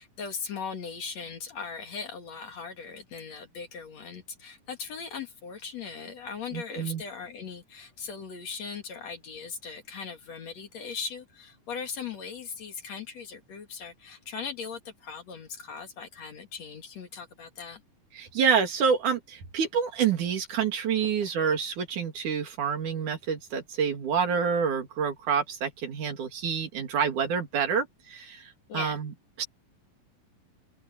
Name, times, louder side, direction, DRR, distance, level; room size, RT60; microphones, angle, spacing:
voice 1, 0.0-17.8 28.7-29.0, left 5 dB, 55° left, 2.8 m, -39 dB
voice 2, 6.5-7.0 18.1-29.1 29.4-29.5, right 6 dB, 65° right, 3.6 m, -28 dB
open air
omnidirectional pair, 4.0 m